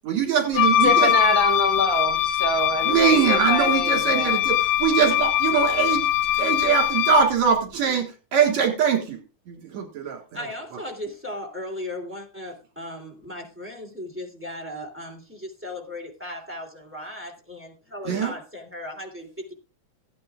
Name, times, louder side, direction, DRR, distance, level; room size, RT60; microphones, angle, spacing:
voice 1, 0.0-1.1 2.8-6.1 6.3-9.2 9.5-10.2 18.1-18.3, right 7 dB, 70° right, 2.9 m, -22 dB
Wind instrument woodwind instrument, 0.5-7.3, left 10 dB, 70° left, 1.4 m, -22 dB
voice 2, 0.8-4.4, left 1 dB, 45° left, 2.5 m, -26 dB
voice 3, 10.3-19.5, left 1 dB, 5° right, 2.5 m, -36 dB
16.5 x 9.7 x 2.4 m
omnidirectional pair, 3.4 m